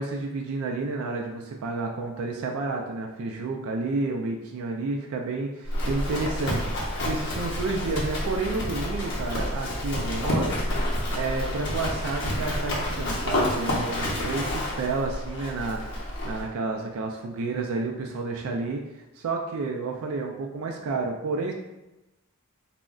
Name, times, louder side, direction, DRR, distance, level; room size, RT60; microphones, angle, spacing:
voice 1, 0.0-10.6 11.1-18.8 19.2-21.5, right 3 dB, 70° right, 1 dB, 0.3 m, -30 dB
Livestock farm animals working animals, 5.7-16.5, left 1 dB, 50° left, 0.6 m, -29 dB
2.3 x 2.1 x 3.6 m, 0.97 s
head